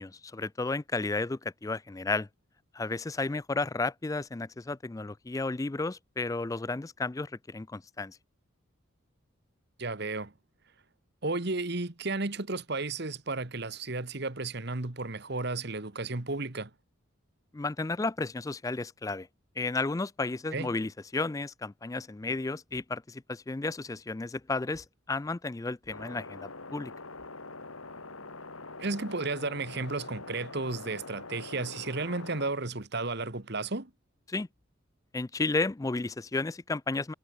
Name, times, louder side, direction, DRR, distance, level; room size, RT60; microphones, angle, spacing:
voice 1, 0.0-2.3 2.7-8.2 17.5-19.3 19.6-26.9 34.3-34.5 35.1-37.1, left 3 dB, 15° left, 0.3 m, -33 dB
voice 2, 9.8-10.3 11.2-16.7 20.5-20.7 28.8-33.9, right 3 dB, 50° right, 1.5 m, -33 dB
sound 1, 25.9-32.5, left 3 dB, 80° left, 4.0 m, -44 dB
head